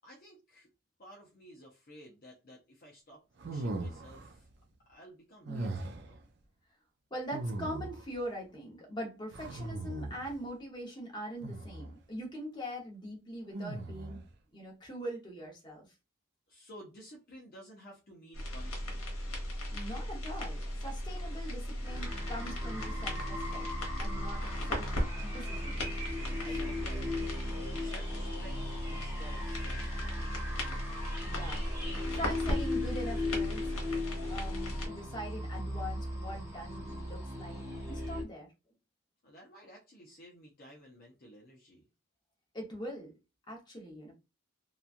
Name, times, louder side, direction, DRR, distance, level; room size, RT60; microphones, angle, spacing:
voice 1, 0.0-0.7 1.0-4.5 4.9-6.2 16.5-19.0 26.3-27.5 27.8-28.6 28.9-30.5 39.2-41.9, equal, 40° left, 0.6 m, -53 dB
sound 1, 3.4-4.4 5.5-6.2 7.3-8.1 9.3-10.3 11.4-12.0 13.5-14.3, right 2 dB, 50° right, 0.4 m, -39 dB
voice 2, 7.1-14.2 14.5-15.9 19.7-23.7 24.0-24.4 24.7-25.8 26.4-26.6 31.2-33.9 34.3-38.5 42.5-43.1 43.5-44.1, equal, 20° left, 1.0 m, -42 dB
sound 2, 18.3-34.9, equal, 75° left, 1.1 m, -37 dB
sound 3, 21.8-38.2, left 2 dB, 10° right, 0.7 m, -38 dB
2.9 x 2.3 x 2.5 m
head